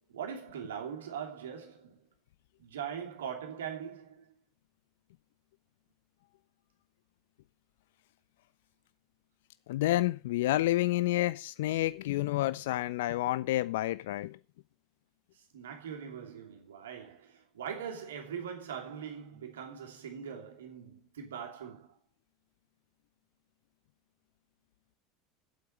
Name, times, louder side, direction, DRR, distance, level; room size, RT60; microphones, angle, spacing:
voice 1, 0.1-2.0 2.6-4.3 15.5-21.9, right 8 dB, 75° right, 2.8 m, -41 dB
voice 2, 9.7-14.4, left 16 dB, 65° left, 1.0 m, -29 dB
8.4 x 8.1 x 7.5 m
figure-of-eight pair, 75°, 0 cm